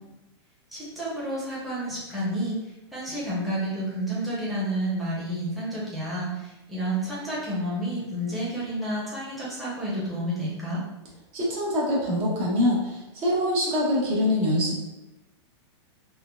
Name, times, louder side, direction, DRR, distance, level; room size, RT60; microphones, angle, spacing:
voice 1, 0.7-2.6 2.9-10.8, right 1 dB, ahead, -8 dB, 0.8 m, -30 dB
voice 2, 11.3-14.8, left 1 dB, 35° right, -5 dB, 0.9 m, -24 dB
3.5 x 2.1 x 2.2 m, 1.0 s
hypercardioid pair, 130°, 15 cm